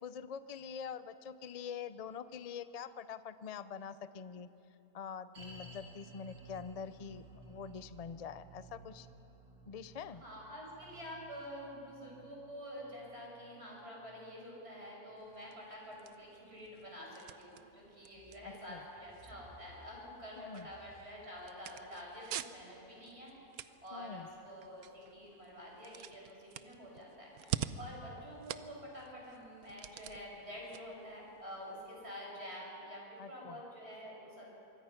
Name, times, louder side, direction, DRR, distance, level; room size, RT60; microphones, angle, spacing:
voice 1, 0.0-4.5 4.9-9.1 9.7-10.2 18.4-18.8 20.4-20.7 23.9-24.3 33.2-33.6, left 6 dB, 55° left, 13 dB, 0.4 m, -45 dB
sound 1, 5.3-16.6 16.9-17.0 17.6-17.7, right 2 dB, 60° right, 3.7 m, -57 dB
voice 2, 10.1-34.5, equal, 40° right, -3 dB, 6.8 m, -48 dB
sound 2, 15.2-32.1, right 11 dB, 75° right, 1.1 m, -48 dB
sound 3, 18.1-25.3 25.8-27.0 27.5-27.6 28.0-28.1 28.4-28.5 28.8-28.9 29.2-29.4 29.6-30.8, left 1 dB, 15° left, 3.4 m, -64 dB
24.5 x 23.5 x 5.9 m, 2.8 s
omnidirectional pair, 1.6 m